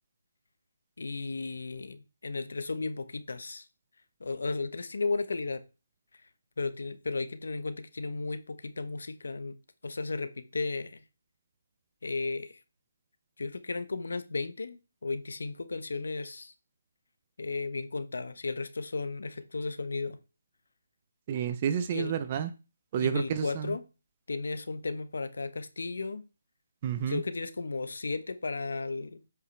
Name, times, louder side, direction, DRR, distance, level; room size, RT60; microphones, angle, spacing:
voice 1, 1.0-3.6 4.2-5.6 6.6-9.5 9.8-11.0 12.0-12.6 13.4-16.5 17.4-20.2 21.9-22.1 23.0-23.8 24.3-26.2 27.1-29.2, left 3 dB, 75° left, 12 dB, 1.0 m, -34 dB
voice 2, 21.3-22.5 22.9-23.8 26.8-27.2, right 8 dB, 30° right, 12 dB, 0.5 m, -30 dB
8.0 x 5.0 x 3.3 m, 0.30 s
hypercardioid pair, 160°, 0 cm